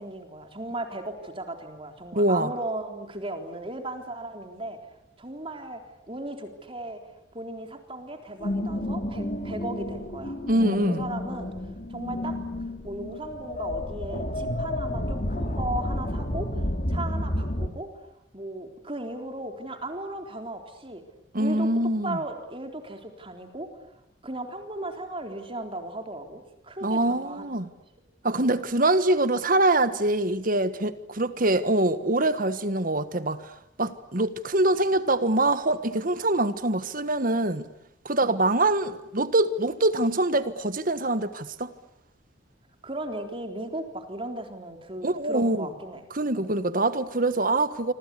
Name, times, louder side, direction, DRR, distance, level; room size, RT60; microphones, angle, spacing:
voice 1, 0.0-4.8 5.2-5.8 6.1-7.0 7.3-10.3 10.6-11.5 11.9-17.9 18.3-21.0 21.4-21.7 22.0-23.7 24.2-27.7 28.3-28.5 38.2-38.4 42.8-46.0 46.4-46.5, right 1 dB, 30° right, 3.8 m, -36 dB
voice 2, 2.1-2.5 10.5-11.1 21.3-22.2 26.8-27.7 28.2-33.5 33.8-37.7 38.0-41.7 45.0-45.7 46.1-47.9, right 2 dB, 45° right, 1.5 m, -24 dB
sound 1, 8.4-17.7, left 1 dB, 45° left, 2.9 m, -30 dB
26.5 x 26.0 x 8.4 m
head